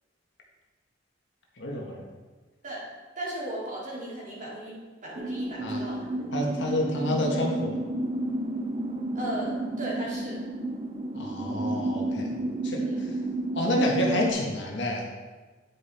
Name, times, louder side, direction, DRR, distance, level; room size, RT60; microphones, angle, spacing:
voice 1, 1.6-2.0 5.6-5.8 6.3-7.8 11.1-12.3 12.6-12.8 13.5-15.0, left 1 dB, 70° left, -1 dB, 1.6 m, -28 dB
voice 2, 3.2-6.0 6.4-6.5 9.1-10.4 12.8-13.1, right 1 dB, 40° right, -5 dB, 2.7 m, -36 dB
sound 1, 5.2-14.3, right 1 dB, 25° right, 0.5 m, -31 dB
9.9 x 5.3 x 4.4 m, 1.3 s
head